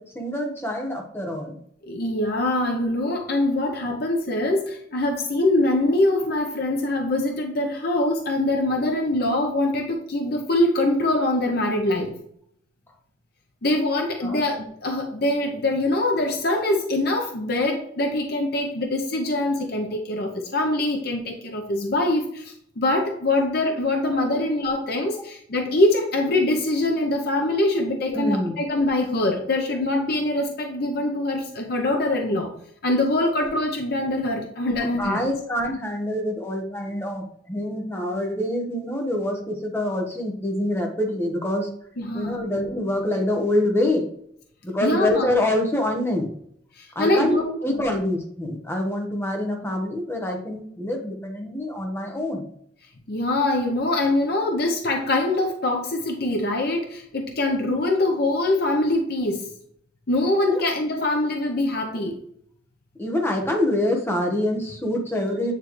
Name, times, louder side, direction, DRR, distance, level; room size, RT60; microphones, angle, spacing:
voice 1, 0.0-1.6 14.2-14.4 28.1-28.6 34.7-41.7 42.1-44.1 44.6-46.3 46.9-52.5 60.5-60.6 63.0-65.5, left 1 dB, 15° left, 2 dB, 1.1 m, -26 dB
voice 2, 1.9-12.2 13.6-32.5 32.8-35.2 42.0-42.4 44.8-45.3 46.8-47.8 53.1-59.5 60.1-62.2, left 1 dB, 55° left, 2 dB, 0.8 m, -23 dB
9.2 x 3.2 x 3.2 m, 0.68 s
head